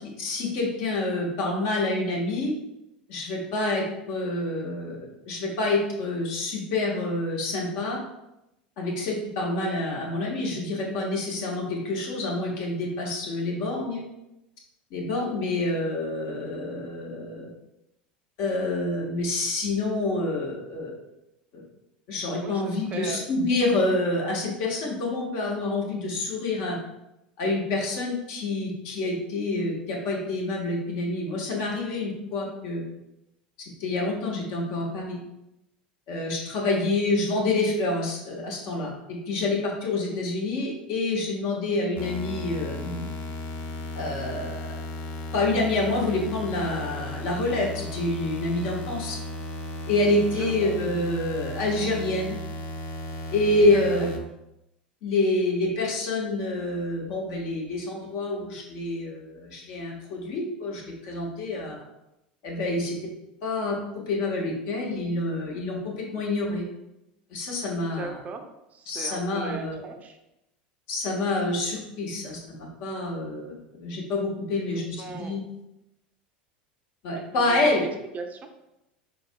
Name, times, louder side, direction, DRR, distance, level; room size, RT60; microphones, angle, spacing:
voice 1, 0.2-2.5 3.1-5.0 5.2-8.0 8.8-14.0 14.9-17.4 18.4-20.9 21.5-21.6 22.1-26.8 27.4-32.8 33.8-35.2 36.1-43.1 43.9-44.5 45.3-49.2 49.9-52.4 53.3-54.1 55.0-61.8 62.4-63.0 63.4-63.7 64.1-66.6 67.3-68.1 68.9-69.8 70.9-72.4 72.8-73.5 73.8-75.4 77.0-77.9, left 2 dB, 60° left, -2 dB, 1.3 m, -27 dB
voice 2, 22.4-23.3 40.1-40.2 50.4-50.7 53.7-54.1 68.0-68.5 68.7-70.2 74.6-75.4 77.1-77.9 78.1-78.5, right 4 dB, 30° right, 5 dB, 0.5 m, -38 dB
sound 1, 42.0-54.2, left 1 dB, 45° left, 0.8 m, -35 dB
4.7 x 3.8 x 2.2 m, 0.89 s
hypercardioid pair, 85°, 5 cm